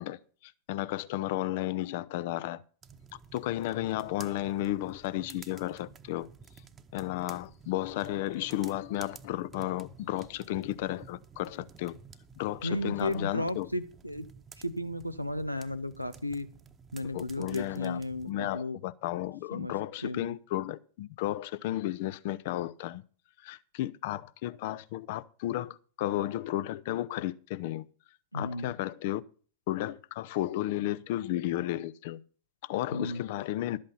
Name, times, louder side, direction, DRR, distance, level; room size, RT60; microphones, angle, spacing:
voice 1, 0.0-2.6 3.3-6.3 6.9-12.0 12.4-13.7 17.1-18.0 18.3-23.0 23.4-27.8 28.3-29.2 29.7-32.2 32.6-33.8, left 14 dB, 50° left, 0.6 m, -33 dB
sound 1, 2.8-18.3, right 6 dB, 20° right, 1.0 m, -53 dB
voice 2, 12.6-14.3 14.6-16.5 16.9-18.8 19.5-19.8 20.0-20.3 28.3-28.7 32.9-33.2, left 1 dB, 90° left, 0.8 m, -34 dB
12.0 x 8.5 x 5.4 m
figure-of-eight pair, 90°, 0 cm